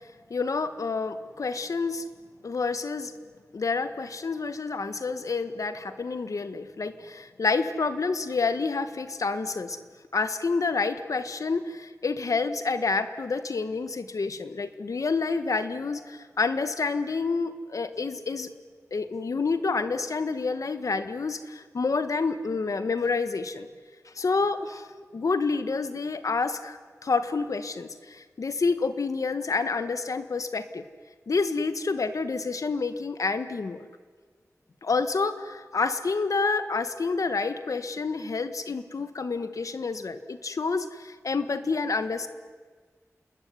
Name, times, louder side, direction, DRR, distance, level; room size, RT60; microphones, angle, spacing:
voice 1, 0.3-2.0 2.4-9.8 10.1-18.5 18.9-23.7 24.0-24.9 25.1-30.8 31.3-33.9 34.8-42.3, left 4 dB, 80° left, 11 dB, 1.6 m, -28 dB
28.5 x 20.5 x 9.7 m, 1.5 s
wide cardioid pair, 85°, 6 cm